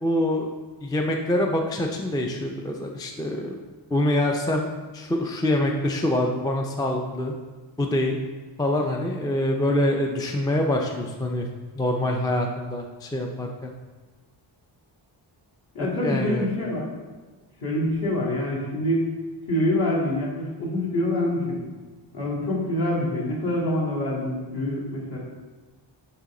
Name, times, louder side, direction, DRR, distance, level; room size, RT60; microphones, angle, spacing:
voice 1, 0.0-0.5 0.8-3.5 3.9-4.7 4.9-7.4 7.8-8.2 8.6-11.5 11.8-13.7 15.8-16.4, left 1 dB, 10° left, 2 dB, 0.3 m, -25 dB
voice 2, 15.7-16.9 17.6-19.0 19.5-21.6 22.1-25.2, left 1 dB, 50° left, -6 dB, 2.2 m, -25 dB
7.0 x 5.8 x 3.7 m, 1.3 s
wide cardioid pair, 170°, 47 cm